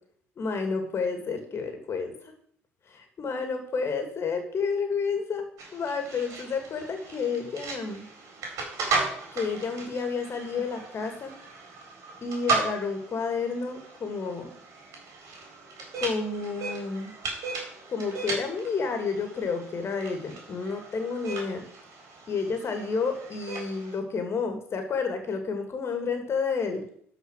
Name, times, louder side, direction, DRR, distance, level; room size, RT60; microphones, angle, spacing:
voice 1, 0.4-2.3 2.9-5.4 5.7-8.0 9.3-11.3 12.2-14.5 16.0-17.1 17.9-21.6 22.3-26.8, left 5 dB, 40° left, 6 dB, 2.5 m, -30 dB
sound 1, 5.6-24.0, right 4 dB, 50° right, 4.2 m, -36 dB
12.5 x 5.0 x 6.5 m, 0.62 s
hypercardioid pair, 60°, 7 cm